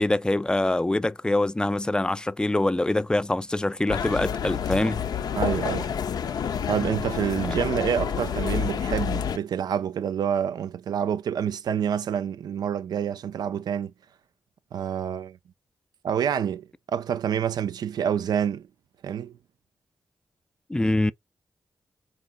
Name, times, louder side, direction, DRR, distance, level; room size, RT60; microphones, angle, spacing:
voice 1, 0.0-5.1 7.5-7.6 20.7-21.1, left 2 dB, 10° left, 0.3 m, -24 dB
sound 1, 3.9-9.4, left 7 dB, 75° left, 0.4 m, -28 dB
voice 2, 5.3-5.9 6.7-13.9 14.7-15.4 16.0-18.7 19.0-19.3, right 8 dB, 80° right, 0.4 m, -27 dB
3.7 x 2.4 x 3.7 m
supercardioid pair, 45°, 7 cm